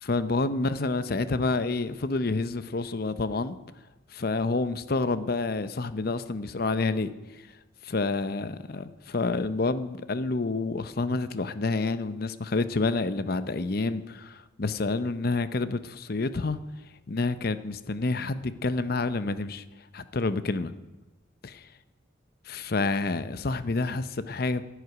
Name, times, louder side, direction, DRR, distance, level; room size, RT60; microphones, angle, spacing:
voice 1, 0.0-3.6 4.1-7.5 7.8-16.6 17.1-19.6 19.9-20.7 21.4-21.7 22.5-24.6, left 3 dB, 50° left, 0.7 m, -28 dB
11.0 x 8.1 x 9.4 m
head